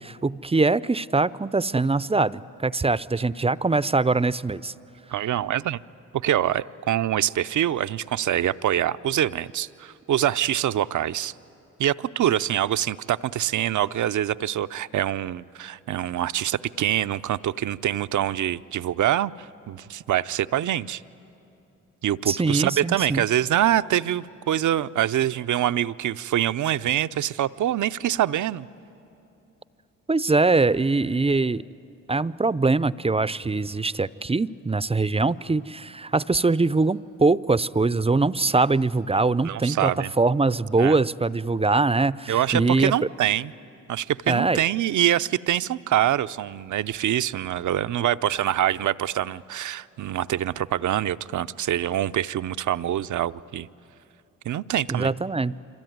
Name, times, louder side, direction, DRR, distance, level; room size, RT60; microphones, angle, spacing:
voice 1, 0.0-4.7 22.3-23.2 30.1-31.6 32.1-39.9 40.2-42.9 44.3-44.6 54.9-55.5, right 3 dB, 20° right, 17 dB, 0.6 m, -22 dB
voice 2, 5.1-5.8 6.1-11.3 11.8-21.0 22.0-28.7 39.4-40.1 40.8-41.0 42.3-43.5 43.9-53.7 54.4-55.1, right 11 dB, 65° right, 14 dB, 0.6 m, -25 dB
26.0 x 24.5 x 9.4 m, 2.7 s
supercardioid pair, 45°, 33 cm